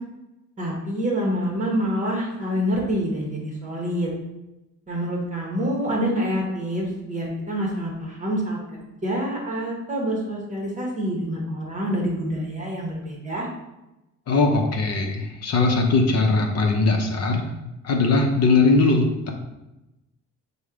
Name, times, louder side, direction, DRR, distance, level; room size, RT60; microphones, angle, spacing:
voice 1, 0.6-4.1 4.9-8.6 9.0-13.5, equal, 25° right, -3 dB, 1.0 m, -26 dB
voice 2, 14.3-17.4 17.8-19.3, left 3 dB, 50° left, 2 dB, 0.7 m, -20 dB
5.1 x 2.1 x 4.7 m, 0.98 s
cardioid pair, 140°, 32 cm